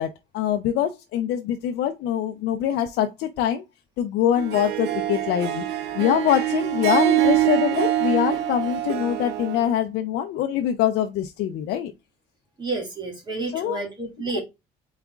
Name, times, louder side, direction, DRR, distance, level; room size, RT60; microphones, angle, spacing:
voice 1, 0.0-3.6 4.0-5.7 5.9-11.9 13.5-13.8 14.3-14.4, left 10 dB, 80° left, 0.6 m, -24 dB
Harp, 4.4-9.7, right 13 dB, 75° right, 0.8 m, -24 dB
voice 2, 12.6-14.4, right 3 dB, 25° right, 1.7 m, -30 dB
4.1 x 3.6 x 3.5 m
cardioid pair, 110°, 17 cm